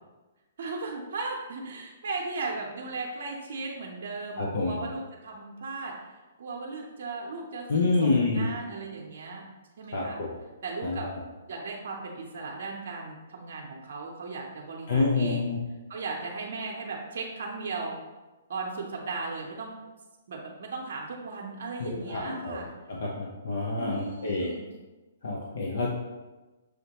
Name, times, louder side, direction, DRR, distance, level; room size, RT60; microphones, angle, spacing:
voice 1, 0.6-5.9 6.4-9.5 9.8-10.2 10.6-11.1 11.5-15.5 15.9-18.0 18.5-19.7 20.3-22.7 23.8-24.7 25.7-25.9, right 3 dB, 65° right, -1 dB, 0.6 m, -36 dB
voice 2, 4.4-4.8 7.7-8.5 9.9-10.3 10.8-11.1 14.9-15.6 21.8-22.6 22.9-24.5 25.2-25.9, left 3 dB, 70° left, -2 dB, 0.6 m, -27 dB
6.3 x 2.1 x 2.9 m, 1.2 s
hypercardioid pair, 140°, 0 cm